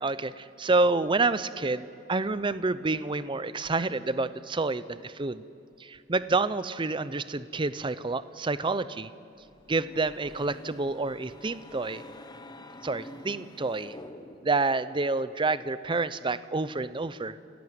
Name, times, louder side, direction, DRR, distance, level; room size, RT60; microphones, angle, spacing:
voice 1, 0.0-5.4 5.8-9.1 9.7-12.0 12.8-14.0 14.4-17.4, right 3 dB, 25° right, 15 dB, 0.6 m, -28 dB
sound 1, 9.4-14.7, left 1 dB, 20° left, 1.2 m, -47 dB
29.0 x 15.5 x 9.4 m, 2.6 s
head